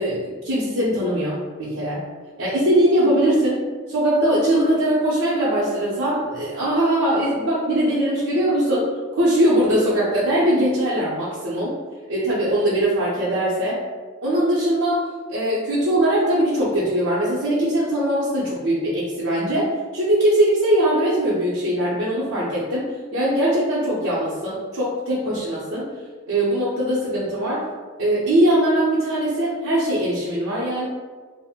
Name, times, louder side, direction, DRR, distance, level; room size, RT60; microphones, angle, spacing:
voice 1, 0.0-2.0 2.4-11.8 12.1-13.8 14.2-15.0 15.3-25.9 26.3-27.7 28.0-30.9, right 1 dB, 85° right, -9 dB, 0.7 m, -21 dB
2.5 x 2.1 x 3.5 m, 1.4 s
head